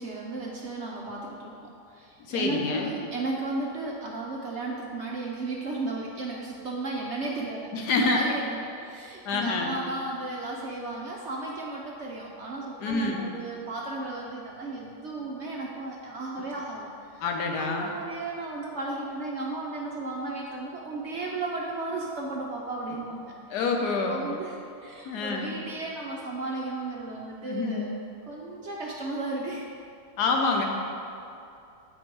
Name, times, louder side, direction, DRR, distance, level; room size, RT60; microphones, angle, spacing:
voice 1, 0.0-1.5 1.9-17.2 17.6-23.3 24.1-27.9 28.3-29.7, right 2 dB, 60° right, -2 dB, 0.7 m, -34 dB
voice 2, 2.3-2.9 7.7-8.2 9.2-9.8 12.8-13.3 17.2-17.9 23.5-24.2 25.0-25.5 27.4-27.9 30.2-30.6, left 4 dB, 80° left, 1 dB, 1.3 m, -27 dB
8.3 x 4.3 x 4.5 m, 2.6 s
omnidirectional pair, 1.8 m